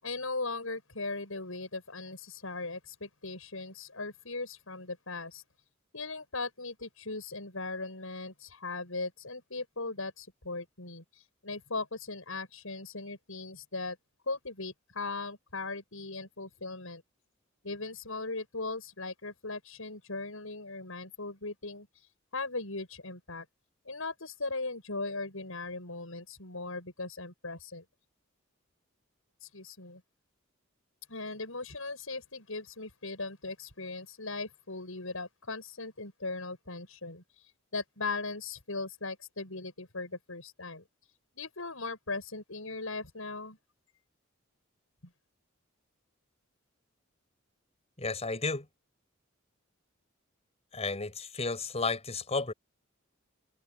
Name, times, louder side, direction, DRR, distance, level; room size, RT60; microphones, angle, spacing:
voice 1, 0.0-5.4 5.9-11.0 11.4-14.0 14.3-17.0 17.6-21.9 22.3-23.5 23.9-27.8 29.4-30.0 31.1-37.2 37.7-40.8 41.4-43.6 45.0-45.1, left 3 dB, 75° left, 7.1 m, -38 dB
voice 2, 48.0-48.7 50.7-52.5, left 3 dB, 30° left, 5.0 m, -32 dB
head